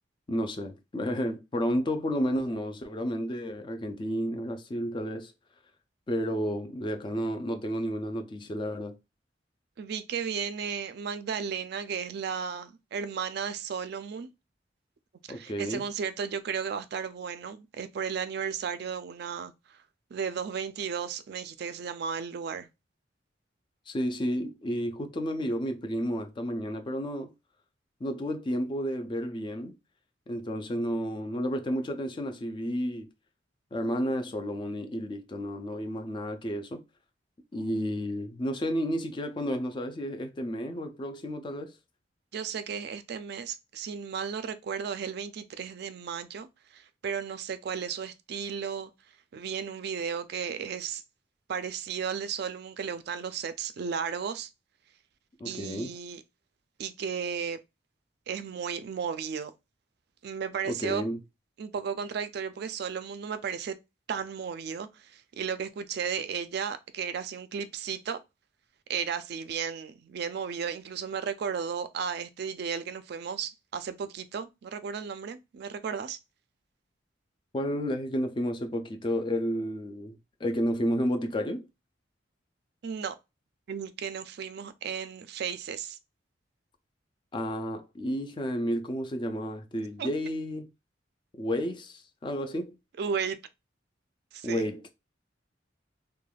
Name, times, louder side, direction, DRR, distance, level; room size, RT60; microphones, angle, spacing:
voice 1, 0.3-5.3 6.1-9.0 15.3-15.8 23.9-27.3 28.0-29.7 30.3-33.1 33.7-36.8 37.5-41.7 55.4-55.9 60.7-61.2 77.5-81.7 87.3-90.7 91.4-92.8 94.4-94.9, equal, 25° left, 0.4 m, -31 dB
voice 2, 9.8-14.3 15.3-19.8 20.1-22.7 42.3-48.9 49.3-51.0 51.5-54.5 55.4-56.2 56.8-57.6 58.3-59.5 60.2-61.0 61.6-63.8 64.1-68.2 68.9-76.2 82.8-83.2 83.7-86.0 90.0-90.1 93.0-93.4 94.3-94.6, right 6 dB, 60° right, 0.3 m, -34 dB
3.2 x 2.2 x 2.3 m
head